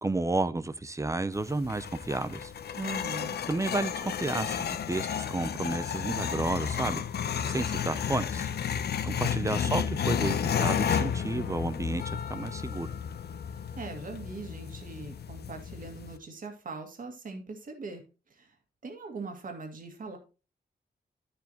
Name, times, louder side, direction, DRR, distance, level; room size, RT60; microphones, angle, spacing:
voice 1, 0.0-2.5 3.5-7.0 7.5-8.5 9.0-12.9, right 2 dB, 20° right, 0.6 m, -31 dB
sound 1, 1.3-16.2, left 8 dB, 80° left, 0.7 m, -32 dB
voice 2, 2.8-3.4 9.4-9.7 13.8-18.0 18.3-18.5 18.8-20.2, right 3 dB, 55° right, 2.1 m, -41 dB
11.5 x 7.1 x 3.0 m
wide cardioid pair, 125°, 16 cm